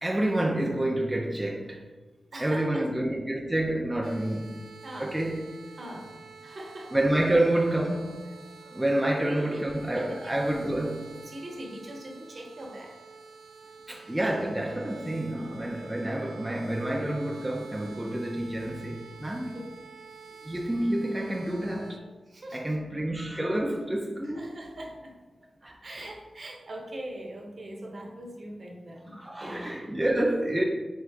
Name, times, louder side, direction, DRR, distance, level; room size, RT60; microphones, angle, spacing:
voice 1, 0.0-1.8 2.4-4.6 5.0-5.4 6.9-8.2 8.7-11.2 13.9-19.6 20.4-22.0 22.5-24.5 25.6-26.1 29.1-30.6, right 1 dB, 10° right, -1 dB, 0.4 m, -28 dB
voice 2, 2.3-2.8 4.8-5.2 5.8-6.9 8.6-8.7 9.0-10.4 11.3-12.9 19.5-19.7 22.3-22.8 24.2-25.1 25.8-29.8, right 1 dB, 50° right, 1 dB, 0.8 m, -41 dB
sound 1, 4.0-22.0, right 5 dB, 90° right, 0.4 m, -49 dB
3.7 x 3.6 x 3.3 m, 1.3 s
wide cardioid pair, 95°, 0 cm